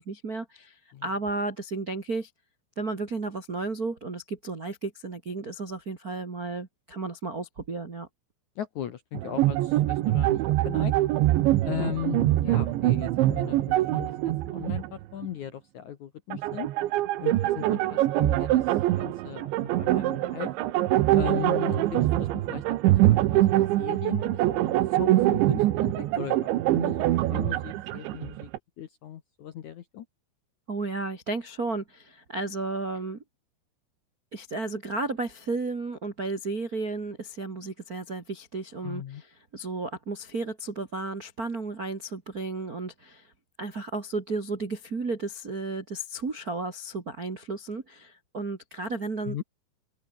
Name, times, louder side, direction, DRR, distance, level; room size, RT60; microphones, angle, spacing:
voice 1, 0.0-2.3 2.7-8.1 30.7-33.2 34.3-39.3 39.5-43.3 43.6-49.4, right 3 dB, 45° right, 1.2 m, -33 dB
voice 2, 8.6-10.9 11.6-16.7 17.2-20.5 21.1-28.5 28.8-30.1 38.8-39.2 49.3-49.4, left 10 dB, 70° left, 1.8 m, -38 dB
sound 1, 9.1-14.9 15.2-15.3 16.3-28.6, right 15 dB, 80° right, 3.5 m, -24 dB
omnidirectional pair, 5.3 m